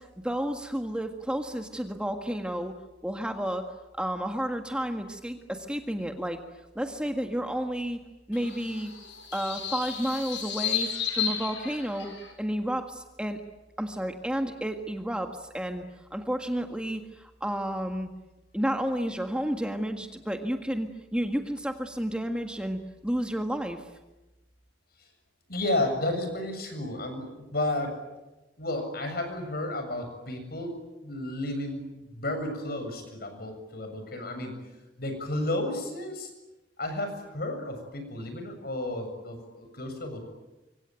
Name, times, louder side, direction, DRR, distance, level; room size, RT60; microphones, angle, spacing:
voice 1, 0.0-2.7 3.0-3.6 3.9-6.4 6.7-8.0 8.3-8.9 9.3-12.1 12.4-13.4 13.8-15.8 16.1-18.1 18.5-23.8, equal, 5° right, 4 dB, 1.7 m, -31 dB
sound 1, 8.3-12.3, left 8 dB, 85° left, 7.2 m, -33 dB
voice 2, 25.5-27.9 28.6-30.8 31.0-34.5 35.0-36.3 36.8-40.2, left 1 dB, 55° left, 6 dB, 7.2 m, -32 dB
26.0 x 24.5 x 9.2 m, 1.0 s
head